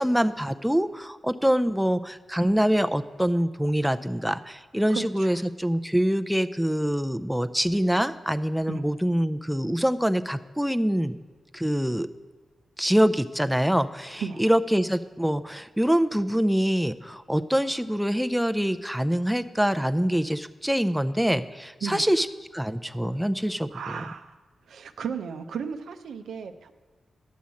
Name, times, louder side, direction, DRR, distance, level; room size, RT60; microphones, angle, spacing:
voice 1, 0.0-11.2 11.5-12.1 12.8-22.3 22.5-23.7, equal, ahead, 10 dB, 0.5 m, -25 dB
voice 2, 4.9-5.4 8.7-8.8 14.2-14.5 21.8-22.1 23.7-24.3 24.7-26.7, right 6 dB, 85° right, 7 dB, 0.6 m, -35 dB
10.5 x 6.2 x 8.3 m, 1.3 s
cardioid pair, 60°, 0 cm